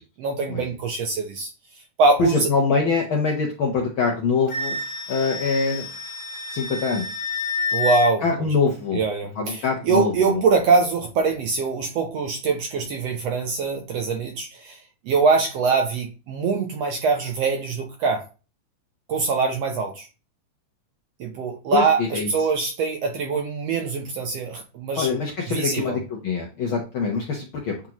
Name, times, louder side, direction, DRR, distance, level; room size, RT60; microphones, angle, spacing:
voice 1, 0.2-1.5 2.0-2.5 7.7-8.2 8.9-14.8 15.1-18.2 19.1-20.1 21.2-25.1 25.5-26.0, right 4 dB, 70° right, 4 dB, 1.6 m, -23 dB
voice 2, 2.2-4.8 5.1-5.9 6.5-7.1 8.2-9.0 9.4-10.4 21.7-22.3 24.9-27.9, left 5 dB, 80° left, 0 dB, 1.1 m, -24 dB
Wind instrument woodwind instrument, 4.5-8.1, left 3 dB, 50° left, 1.5 m, -29 dB
8.9 x 3.7 x 2.9 m, 0.32 s
omnidirectional pair, 3.7 m